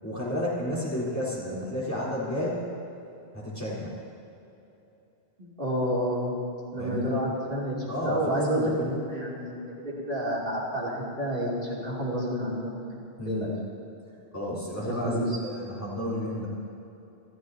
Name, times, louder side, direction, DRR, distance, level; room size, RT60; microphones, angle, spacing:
voice 1, 0.0-2.7 3.3-4.0 6.8-7.1 7.9-8.8 13.2-13.5 14.3-16.5, left 1 dB, 15° left, -7 dB, 4.1 m, -31 dB
voice 2, 5.4-6.3 6.7-12.9 13.3-13.5 14.8-15.3, equal, 55° right, -6 dB, 3.3 m, -30 dB
28.5 x 13.5 x 2.9 m, 2.9 s
omnidirectional pair, 1.1 m